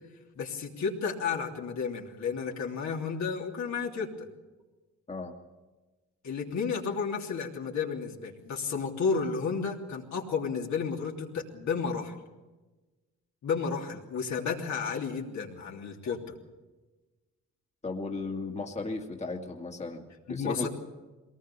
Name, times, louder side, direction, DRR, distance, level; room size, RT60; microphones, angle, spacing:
voice 1, 0.3-4.1 6.2-12.1 13.4-16.3 20.3-20.7, left 5 dB, 65° left, 0 dB, 3.2 m, -32 dB
voice 2, 17.8-20.7, left 3 dB, 20° left, 2 dB, 2.2 m, -35 dB
22.0 x 19.0 x 7.1 m, 1.2 s
cardioid pair, 90°, 30 cm